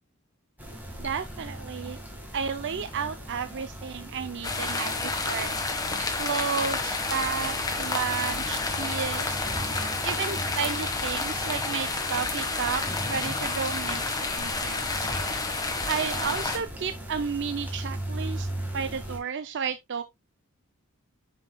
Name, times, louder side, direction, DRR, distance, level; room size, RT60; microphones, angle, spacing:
sound 1, 0.6-19.2, right 1 dB, 10° right, 1.7 m, -38 dB
voice 1, 1.0-2.0 2.3-5.5 6.2-9.4 10.0-15.1 15.9-18.5 18.7-20.0, right 6 dB, 55° right, 0.5 m, -32 dB
sound 2, 4.4-16.6, left 3 dB, 15° left, 1.3 m, -30 dB
8.7 x 5.8 x 2.2 m
head